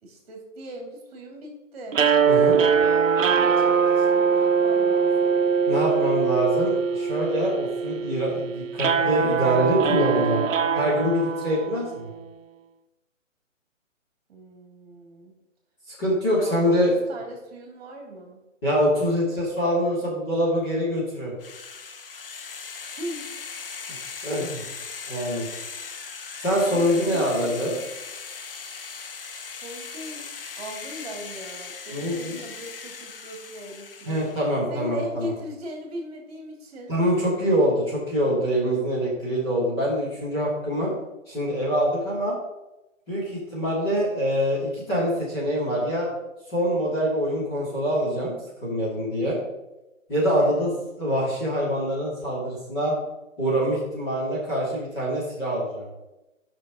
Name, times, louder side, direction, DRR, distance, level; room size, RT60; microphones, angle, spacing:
voice 1, 0.0-2.0 3.4-5.4 14.3-15.3 16.3-16.8 17.1-18.4 22.9-23.3 26.7-27.5 29.5-30.3 30.6-34.2 34.7-36.9 50.4-50.7, right 1 dB, 30° right, 1 dB, 2.7 m, -39 dB
sound 1, 1.9-12.1, right 6 dB, 75° right, 0.8 m, -22 dB
voice 2, 2.3-2.6 5.7-10.4 10.7-12.1 15.9-16.9 18.6-21.3 24.2-24.6 25.1-25.5 26.4-27.8 31.9-32.4 34.0-35.3 36.9-40.9 41.3-42.3 43.1-46.1 46.5-48.3 48.6-49.4 50.1-50.7 51.0-52.9 53.4-55.9, equal, 20° left, -8 dB, 2.6 m, -24 dB
sound 2, 21.4-34.5, left 5 dB, 45° left, 0.7 m, -39 dB
12.5 x 6.1 x 3.8 m, 0.98 s
hypercardioid pair, 175°, 39 cm